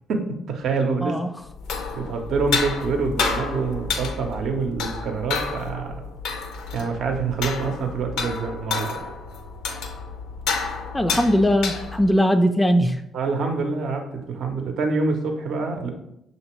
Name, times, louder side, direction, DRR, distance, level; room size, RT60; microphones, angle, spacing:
voice 1, 0.1-1.2 2.0-5.9 6.7-9.0 13.1-15.9, right 4 dB, 65° right, 4 dB, 0.6 m, -26 dB
sound 1, 1.5-12.2, left 4 dB, 80° left, 0.5 m, -30 dB
voice 2, 10.9-13.0, equal, 15° left, 7 dB, 0.3 m, -20 dB
5.8 x 2.7 x 3.0 m, 0.80 s
hypercardioid pair, 55°, 0 cm